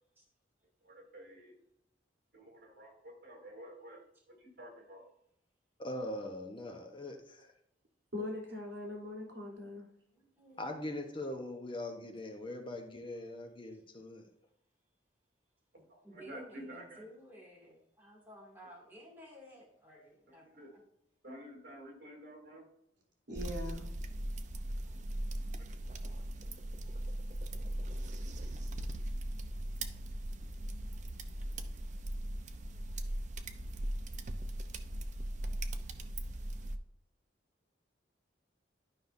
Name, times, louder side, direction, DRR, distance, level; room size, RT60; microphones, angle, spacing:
voice 1, 0.8-1.5 2.3-4.0 4.3-5.1 15.7-17.0 20.3-20.7 21.2-22.7 25.7-25.8, right 1 dB, 60° right, -1 dB, 3.2 m, -50 dB
voice 2, 5.8-7.5 10.6-14.3, left 1 dB, 30° left, 4 dB, 0.9 m, -41 dB
voice 3, 8.1-9.9 23.3-23.9, left 1 dB, 75° right, -1 dB, 3.2 m, -41 dB
voice 4, 10.1-11.0 13.7-13.8 16.0-20.8, equal, 10° right, -4 dB, 2.4 m, -55 dB
sound 1, 23.4-36.8, right 1 dB, 40° right, 0.6 m, -39 dB
11.5 x 5.5 x 2.7 m, 0.75 s
head